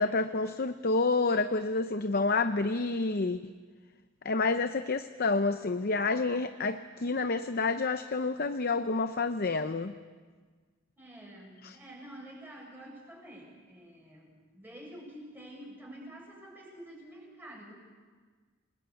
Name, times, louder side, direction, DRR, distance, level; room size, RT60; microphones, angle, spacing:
voice 1, 0.0-3.4 4.2-9.9 11.6-11.8, left 3 dB, 45° left, 9 dB, 0.7 m, -29 dB
voice 2, 11.0-17.7, right 1 dB, 10° right, -2 dB, 7.2 m, -48 dB
28.0 x 21.0 x 8.3 m, 1.5 s
head